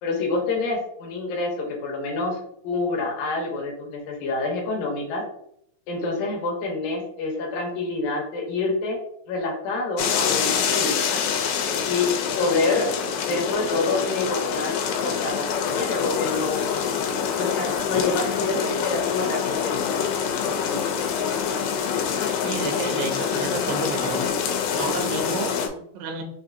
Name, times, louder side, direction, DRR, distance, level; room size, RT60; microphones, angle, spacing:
voice 1, 0.0-2.4 2.6-5.2 5.9-9.0 9.3-11.2 11.8-12.1 12.4-12.9 13.2-16.7 17.3-19.9 20.4-20.8, left 3 dB, 75° left, 0 dB, 2.2 m, -27 dB
sound 1, 10.0-25.7, left 7 dB, 90° left, 2.9 m, -25 dB
voice 2, 22.4-24.2 24.8-26.2, right 4 dB, 90° right, 5 dB, 2.8 m, -31 dB
6.4 x 2.6 x 2.5 m, 0.72 s
omnidirectional pair, 4.8 m